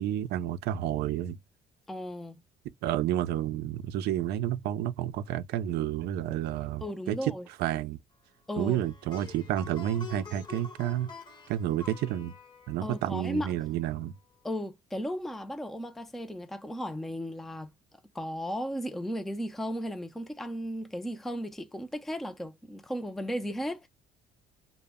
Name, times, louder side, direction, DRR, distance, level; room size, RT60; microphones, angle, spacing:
voice 1, 0.0-1.4 2.8-7.3 7.6-8.0 8.6-11.1 11.5-12.4 12.7-14.2, right 12 dB, 75° right, 0.4 m, -30 dB
voice 2, 1.9-2.4 6.8-7.5 8.5-8.8 12.8-13.5 14.4-17.7 18.1-23.9, equal, ahead, 0.4 m, -35 dB
Plucked string instrument, 8.6-13.8, left 5 dB, 25° left, 0.7 m, -47 dB
2.1 x 2.0 x 3.4 m
cardioid pair, 110°, 17 cm